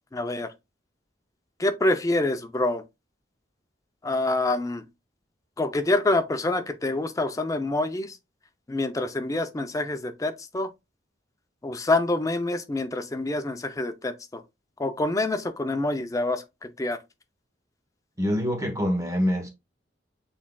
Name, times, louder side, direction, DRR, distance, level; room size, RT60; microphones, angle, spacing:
voice 1, 0.1-0.5 1.6-2.8 4.0-4.9 5.6-8.2 8.7-10.7 11.6-14.4 14.8-17.0, left 2 dB, 20° left, 0.4 m, -26 dB
voice 2, 18.2-19.5, equal, 20° right, 1.0 m, -25 dB
6.3 x 3.6 x 2.2 m
head